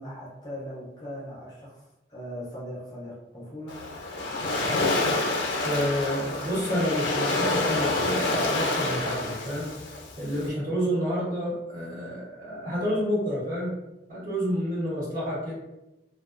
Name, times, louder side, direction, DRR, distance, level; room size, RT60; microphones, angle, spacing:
voice 1, 0.0-3.9, equal, 20° left, -6 dB, 0.5 m, -39 dB
Waves surf, 3.7-10.5, left 2 dB, 80° left, 0.5 m, -28 dB
voice 2, 5.6-9.7 10.2-13.8 14.1-15.5, equal, 45° right, -8 dB, 1.1 m, -29 dB
2.2 x 2.2 x 2.4 m, 0.97 s
head